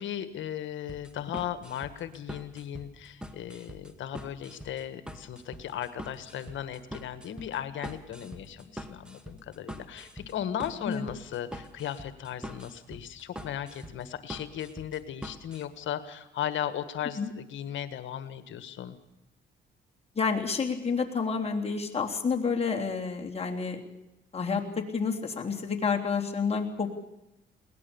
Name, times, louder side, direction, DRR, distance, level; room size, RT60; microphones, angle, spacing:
voice 1, 0.0-19.0, left 10 dB, 75° left, 11 dB, 1.6 m, -36 dB
sound 1, 0.9-15.6, equal, 5° right, 2.1 m, -44 dB
voice 2, 20.1-23.9 24.3-27.0, left 5 dB, 30° left, 1 dB, 3.4 m, -29 dB
21.5 x 18.5 x 7.1 m, 0.89 s
cardioid pair, 90°, 20 cm